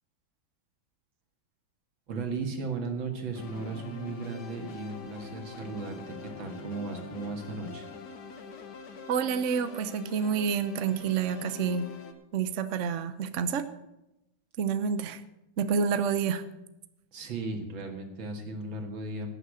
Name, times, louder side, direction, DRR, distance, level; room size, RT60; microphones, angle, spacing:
voice 1, 2.1-7.9 17.1-19.3, right 3 dB, 80° right, 4 dB, 2.6 m, -36 dB
sound 1, 3.3-12.1, left 5 dB, 60° left, 1.7 m, -44 dB
voice 2, 9.1-11.9 12.3-13.7 14.6-15.2 15.6-16.4, right 6 dB, 55° right, 10 dB, 0.8 m, -28 dB
17.5 x 6.7 x 6.4 m, 0.91 s
omnidirectional pair, 2.1 m